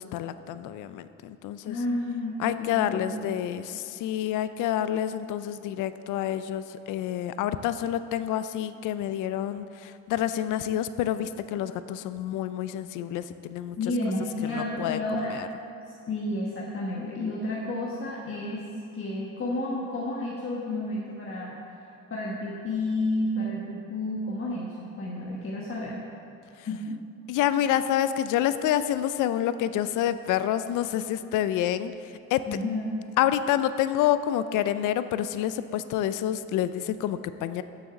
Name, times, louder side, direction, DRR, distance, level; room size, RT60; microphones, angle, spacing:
voice 1, 0.0-1.8 2.4-13.8 14.4-15.0 15.3-15.5 26.6-26.7 27.3-32.4 33.2-37.6, left 11 dB, 85° left, 12 dB, 0.5 m, -28 dB
voice 2, 1.7-3.3 13.8-15.4 15.8-18.7 18.9-26.0 26.7-27.0 32.5-32.8, left 2 dB, 45° left, -4 dB, 1.3 m, -31 dB
7.3 x 6.3 x 7.0 m, 2.7 s
cardioid pair, 90°, 30 cm